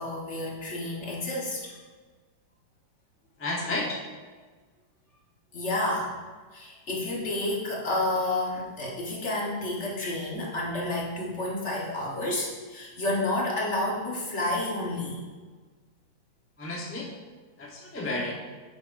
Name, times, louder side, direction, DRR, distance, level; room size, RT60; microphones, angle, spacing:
voice 1, 0.0-1.7 5.5-6.1 6.5-15.2, left 1 dB, 40° left, -3 dB, 1.4 m, -30 dB
voice 2, 3.4-4.0 16.6-17.1 17.6-18.3, left 2 dB, 15° left, -3 dB, 0.4 m, -31 dB
9.5 x 6.3 x 2.6 m, 1.4 s
omnidirectional pair, 2.2 m